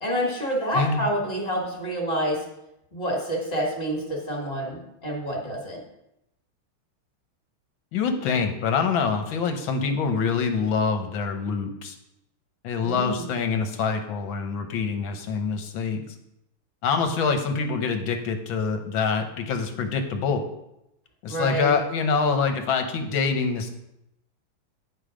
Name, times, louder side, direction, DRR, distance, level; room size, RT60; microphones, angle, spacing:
voice 1, 0.0-2.5 2.9-5.8 12.8-13.3 21.3-21.7, equal, 30° left, -1 dB, 2.0 m, -28 dB
voice 2, 0.7-1.1 7.9-11.9 12.6-16.0 16.8-20.5 21.2-23.7, left 5 dB, 65° left, 6 dB, 1.6 m, -25 dB
9.7 x 5.1 x 5.0 m, 0.84 s
omnidirectional pair, 2.4 m